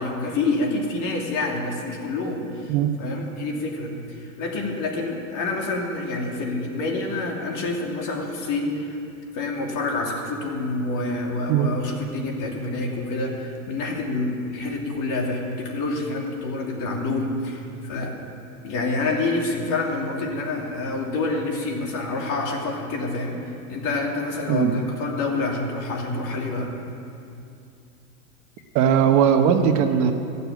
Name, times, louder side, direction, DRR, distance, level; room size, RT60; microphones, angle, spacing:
voice 1, 0.0-9.0 9.3-18.1 18.6-26.8, left 2 dB, 45° left, 0 dB, 2.8 m, -27 dB
voice 2, 24.5-24.9 28.7-30.1, right 8 dB, 45° right, 6 dB, 1.1 m, -19 dB
15.5 x 6.9 x 9.3 m, 2.6 s
hypercardioid pair, 110°, 43 cm